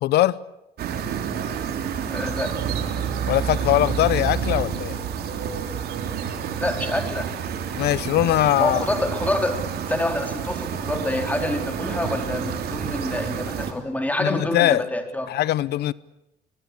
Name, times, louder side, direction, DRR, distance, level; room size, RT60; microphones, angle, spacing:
voice 1, 0.0-0.4 3.3-5.0 7.8-8.8 14.2-14.8 15.3-15.9, left 15 dB, 75° left, 0.8 m, -21 dB
sound 1, 0.8-13.7, right 7 dB, 65° right, 3.4 m, -29 dB
voice 2, 2.1-2.5 6.6-7.3 8.6-9.6 9.9-15.3, left 1 dB, 10° left, 4.1 m, -27 dB
23.0 x 22.5 x 8.5 m
cardioid pair, 110°, 17 cm